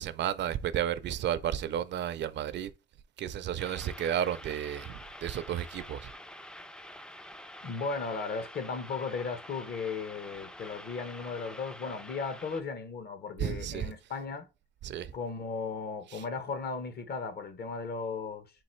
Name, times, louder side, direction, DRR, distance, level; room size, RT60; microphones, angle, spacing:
voice 1, 0.0-2.7 3.2-6.1 13.4-13.9 14.8-15.1 16.1-16.2, right 10 dB, 65° right, 0.5 m, -32 dB
sound 1, 3.6-12.6, left 1 dB, 5° left, 0.3 m, -47 dB
voice 2, 7.6-14.5 15.1-18.5, left 4 dB, 55° left, 1.0 m, -36 dB
3.9 x 2.6 x 4.4 m
cardioid pair, 90°, 20 cm